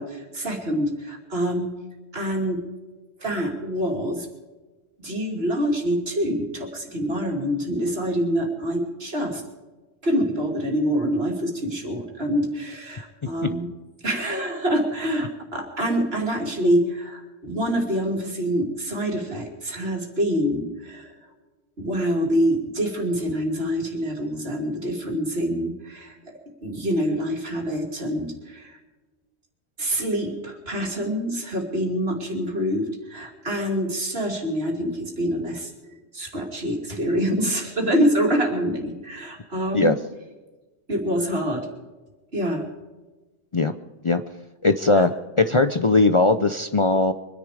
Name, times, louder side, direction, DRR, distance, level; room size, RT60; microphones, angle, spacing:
voice 1, 0.0-1.7 2.1-2.6 3.2-4.3 5.0-9.4 10.0-13.7 14.0-21.1 21.8-26.2 26.6-28.8 29.8-35.7 36.1-39.9 40.9-41.7 42.3-42.7 44.9-45.0, equal, 70° right, 1 dB, 3.1 m, -26 dB
voice 2, 44.6-45.1 45.4-47.1, left 3 dB, 35° left, 9 dB, 0.6 m, -19 dB
24.5 x 10.5 x 5.0 m, 1.2 s
omnidirectional pair, 1.1 m